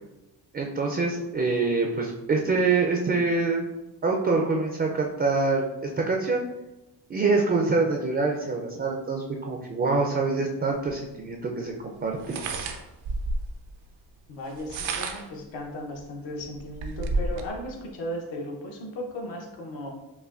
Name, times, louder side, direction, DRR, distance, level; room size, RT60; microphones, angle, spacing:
voice 1, 0.5-3.6 4.0-6.4 7.1-12.4, right 3 dB, 25° right, 1 dB, 0.3 m, -25 dB
sound 1, 10.9-11.0 12.2-13.6 14.5-15.4 16.0-16.1 16.4-17.5, right 2 dB, 85° right, 0.6 m, -30 dB
voice 2, 14.3-19.9, equal, 75° left, 1 dB, 0.9 m, -36 dB
5.6 x 2.2 x 2.4 m, 1.0 s
cardioid pair, 90°, 45 cm